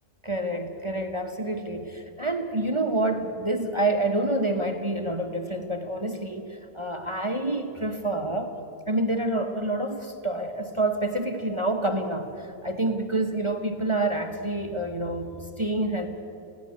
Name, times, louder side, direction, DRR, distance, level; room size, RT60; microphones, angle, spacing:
voice 1, 0.2-8.5 8.9-15.3 15.6-16.1, right 2 dB, 20° right, 6 dB, 0.8 m, -28 dB
20.5 x 16.0 x 9.8 m, 2.7 s
omnidirectional pair, 2.2 m